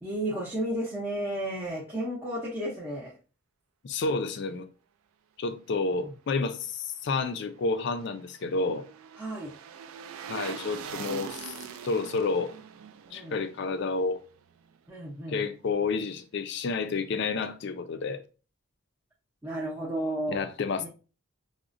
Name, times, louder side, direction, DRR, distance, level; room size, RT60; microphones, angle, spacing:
voice 1, 0.0-3.1 6.0-6.1 9.2-9.5 13.1-13.4 14.9-15.4 19.4-20.5 20.8-20.9, right 1 dB, 10° right, 0.5 m, -33 dB
voice 2, 3.8-4.7 5.4-8.8 10.3-11.6 11.8-12.5 13.1-14.2 15.3-18.2 20.3-20.9, left 4 dB, 55° left, 0.4 m, -30 dB
sound 1, 7.6-14.8 15.1-15.2, right 7 dB, 75° right, 0.3 m, -43 dB
4.7 x 2.1 x 2.5 m
head